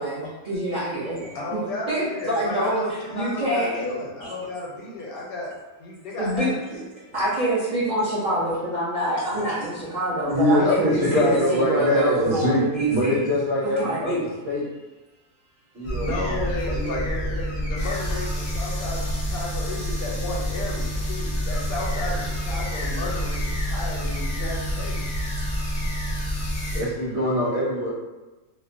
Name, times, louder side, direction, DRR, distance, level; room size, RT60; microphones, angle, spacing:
voice 1, 0.0-1.2 1.9-3.8 6.2-6.8 7.1-13.3 13.8-14.2, right 1 dB, 70° right, -10 dB, 0.4 m, -26 dB
voice 2, 1.3-5.5 5.8-6.5 10.5-11.5 16.0-25.2, left 2 dB, 75° left, -3 dB, 1.1 m, -33 dB
voice 3, 10.3-14.6 15.7-17.3 26.7-27.9, left 1 dB, 50° right, -7 dB, 0.9 m, -24 dB
sound 1, 15.8-26.8, equal, 55° left, 0.6 m, -28 dB
2.8 x 2.0 x 2.5 m, 1.1 s
omnidirectional pair, 1.6 m